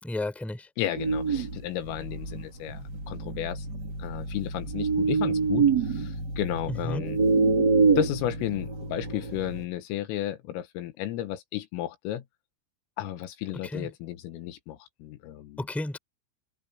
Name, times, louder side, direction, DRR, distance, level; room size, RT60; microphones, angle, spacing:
voice 1, 0.0-0.7 6.7-7.0 13.6-13.9 15.6-16.0, left 1 dB, ahead, 3.3 m, -32 dB
voice 2, 0.8-3.7 4.0-7.2 8.0-12.2 13.0-15.7, left 13 dB, 80° left, 4.0 m, -33 dB
sound 1, 0.9-9.6, right 4 dB, 80° right, 0.9 m, -27 dB
open air
omnidirectional pair, 5.9 m